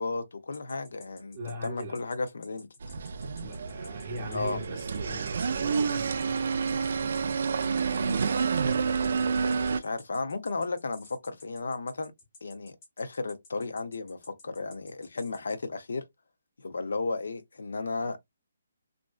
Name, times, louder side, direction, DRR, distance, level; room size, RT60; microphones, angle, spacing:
voice 1, 0.0-2.7 4.3-4.6 8.0-8.2 9.7-12.1 12.4-16.0 16.6-18.2, left 3 dB, 75° left, 0.6 m, -34 dB
sound 1, 0.5-15.6, left 3 dB, 20° left, 0.7 m, -54 dB
voice 2, 1.3-2.0 3.4-6.3, equal, 20° right, 0.6 m, -40 dB
sound 2, 2.8-9.8, right 5 dB, 55° right, 0.3 m, -29 dB
2.5 x 2.2 x 2.3 m
hypercardioid pair, 170°, 0 cm